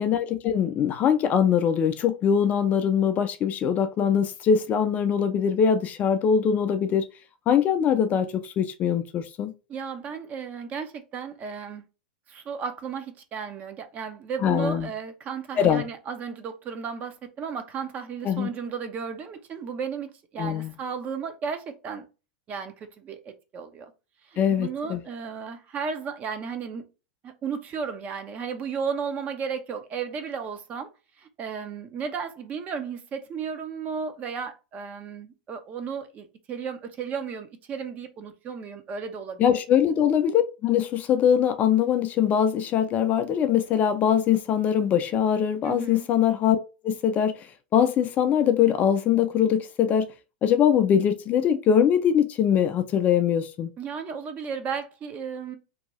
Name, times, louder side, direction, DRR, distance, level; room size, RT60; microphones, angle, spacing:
voice 1, 0.0-7.0 7.5-9.5 14.4-14.9 15.6-15.8 18.2-18.5 20.4-20.7 24.4-25.0 39.4-46.6 46.8-47.5 47.7-50.1 50.4-53.7, left 8 dB, 30° left, 0.4 m, -22 dB
voice 2, 9.7-11.8 12.3-22.0 22.5-23.9 24.2-26.8 27.2-30.9 31.2-39.6 45.6-46.1 53.8-55.6, right 6 dB, 30° right, 0.6 m, -34 dB
2.7 x 2.2 x 2.9 m
hypercardioid pair, 105°, 5 cm